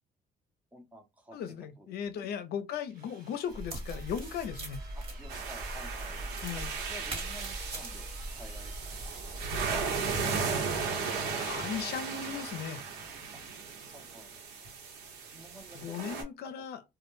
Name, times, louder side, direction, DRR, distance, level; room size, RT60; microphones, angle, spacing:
voice 1, 0.7-1.4 1.8-2.3 5.0-6.2 6.9-9.0 13.3-13.4 13.9-14.3 15.3-16.0 16.5-16.6, equal, 10° right, 0.7 m, -52 dB
voice 2, 1.3-4.8 6.4-6.7 11.4-12.8 15.7-16.8, left 8 dB, 70° left, 0.6 m, -37 dB
Drill, 2.9-9.2 10.6-11.9 12.2-13.3, right 4 dB, 55° right, 1.2 m, -54 dB
sound 1, 3.5-9.7, right 1 dB, 35° right, 1.2 m, -41 dB
sound 2, 5.3-16.2, right 5 dB, 80° right, 1.0 m, -36 dB
2.2 x 2.1 x 3.0 m
cardioid pair, 110°, 17 cm